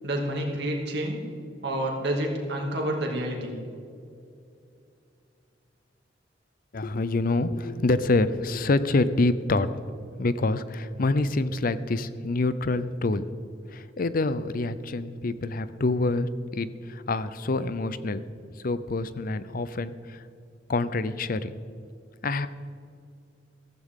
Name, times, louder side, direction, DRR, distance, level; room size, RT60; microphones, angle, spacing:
voice 1, 0.0-1.2 1.6-3.5, right 1 dB, 65° right, 0 dB, 2.6 m, -29 dB
voice 2, 6.7-9.7 10.2-13.3 13.7-18.2 18.6-20.2 20.7-21.5 22.2-22.5, left 2 dB, 50° left, 14 dB, 0.6 m, -26 dB
14.5 x 14.5 x 3.8 m, 2.5 s
head